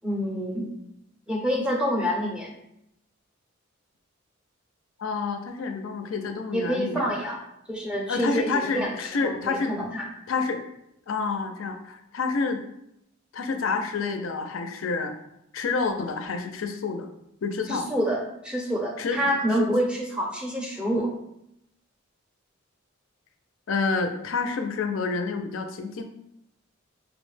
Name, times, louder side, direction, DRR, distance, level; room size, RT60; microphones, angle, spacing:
voice 1, 0.0-0.7 1.3-2.5 6.5-7.4 7.7-9.0 9.2-10.1 17.7-21.1, equal, 5° right, 0 dB, 0.4 m, -27 dB
voice 2, 5.0-7.1 8.1-9.7 10.3-10.6 11.1-12.6 13.3-15.1 15.5-17.1 17.4-17.9 19.0-19.3 19.6-19.7 23.7-26.0, left 4 dB, 75° left, 7 dB, 0.4 m, -28 dB
4.6 x 2.1 x 3.2 m, 0.79 s
head